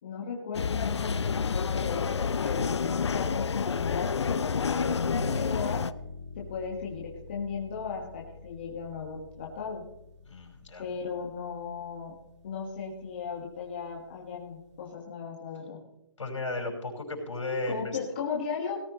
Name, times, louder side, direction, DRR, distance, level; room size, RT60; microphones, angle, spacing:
voice 1, 0.0-5.8 6.3-9.8 10.8-12.1 12.4-15.8 17.7-18.8, left 5 dB, 20° left, -3 dB, 1.6 m, -36 dB
sound 1, 0.5-5.9, left 6 dB, 65° left, 0.5 m, -29 dB
sound 2, 5.1-14.9, left 2 dB, 75° right, 5.8 m, -46 dB
voice 2, 10.3-10.8 16.2-18.0, left 2 dB, 80° left, 1 dB, 5.5 m, -34 dB
18.0 x 14.5 x 3.1 m, 0.85 s
hypercardioid pair, 180°, 16 cm